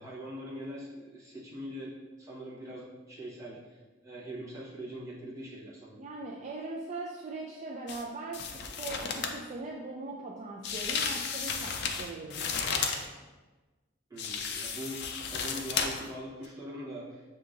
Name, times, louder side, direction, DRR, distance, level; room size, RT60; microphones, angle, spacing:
voice 1, 0.0-1.9 2.2-6.0 14.1-17.2, equal, 15° right, -7 dB, 1.0 m, -42 dB
voice 2, 6.0-12.9, right 3 dB, 35° right, -2 dB, 0.3 m, -40 dB
sound 1, 7.9-8.0 8.3-9.4 10.6-13.1 14.2-16.1 16.4-16.5, left 5 dB, 60° left, 0.4 m, -33 dB
6.5 x 2.8 x 2.4 m, 1.2 s
head